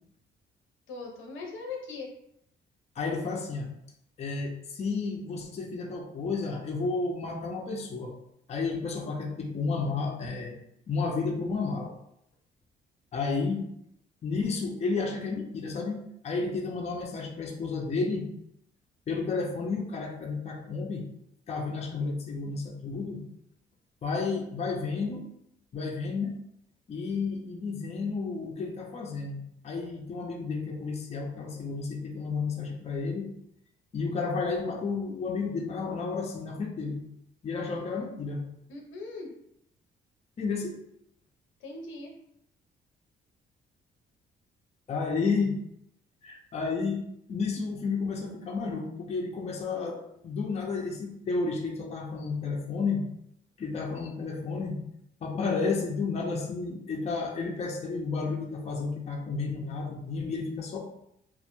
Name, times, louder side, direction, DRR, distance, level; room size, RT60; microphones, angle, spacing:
voice 1, 0.9-2.1 37.7-37.9 38.7-39.3 41.6-42.1, left 3 dB, 75° left, 0 dB, 0.6 m, -40 dB
voice 2, 3.0-3.7 4.2-8.1 8.5-10.6 10.9-11.9 13.1-13.6 14.2-18.3 19.1-21.1 21.5-23.2 24.0-25.3 25.7-26.4 26.9-33.3 33.9-37.0 37.4-38.5 40.4-40.8 44.9-45.6 46.2-53.1 53.6-54.8 55.2-60.8, left 4 dB, 35° left, 0 dB, 0.4 m, -32 dB
2.1 x 2.0 x 2.9 m, 0.76 s
cardioid pair, 90°, 20 cm